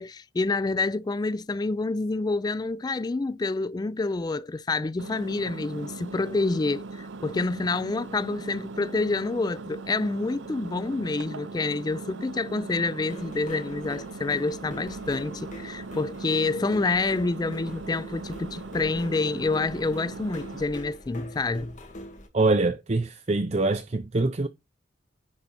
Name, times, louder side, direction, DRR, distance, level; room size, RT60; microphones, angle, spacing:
voice 1, 0.0-21.7, left 3 dB, 20° left, 0.3 m, -28 dB
Engine, 5.0-20.6, right 3 dB, 85° right, 0.6 m, -39 dB
sound 1, 13.1-22.3, left 1 dB, 45° left, 2.2 m, -43 dB
voice 2, 22.3-24.5, right 2 dB, 35° right, 0.6 m, -24 dB
9.8 x 4.0 x 4.1 m
head